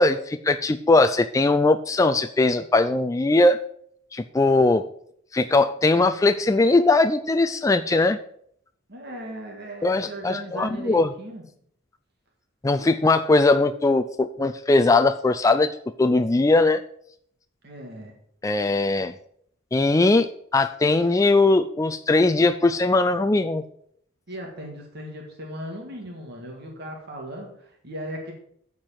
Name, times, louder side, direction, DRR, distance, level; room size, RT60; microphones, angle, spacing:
voice 1, 0.0-3.6 4.1-4.8 5.3-8.2 9.8-11.1 12.6-15.7 16.0-16.8 18.4-19.1 19.7-23.6, left 2 dB, 15° left, 8 dB, 0.3 m, -20 dB
voice 2, 8.9-11.4 17.6-18.1 24.3-28.3, right 1 dB, 50° right, 1 dB, 1.8 m, -37 dB
8.9 x 4.7 x 7.4 m, 0.65 s
head